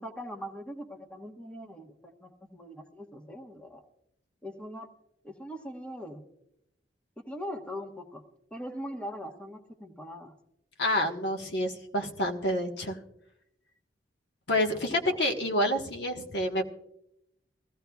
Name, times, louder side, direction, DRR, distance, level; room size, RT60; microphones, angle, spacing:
voice 1, 0.0-3.8 4.4-4.9 5.2-6.2 7.2-8.2 8.5-10.3 14.9-15.2, equal, 5° left, 3 dB, 1.1 m, -41 dB
voice 2, 10.8-13.0 14.5-16.7, left 1 dB, 65° left, 3 dB, 1.3 m, -28 dB
22.0 x 15.0 x 2.3 m, 0.82 s
head